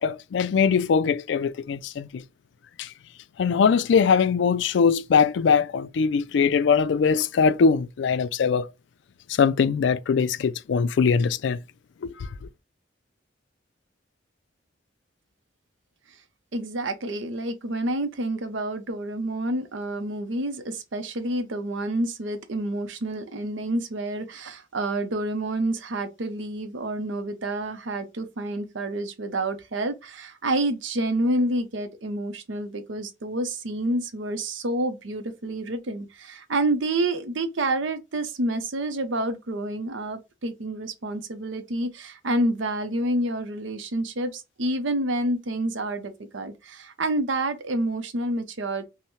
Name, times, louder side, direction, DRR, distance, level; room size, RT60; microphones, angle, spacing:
voice 1, 0.0-2.2 2.8-2.9 3.4-8.7 9.3-11.6 12.0-12.3, left 6 dB, 70° left, 0.3 m, -21 dB
voice 2, 16.5-48.8, right 1 dB, 80° right, 0.7 m, -28 dB
5.5 x 2.1 x 3.1 m
head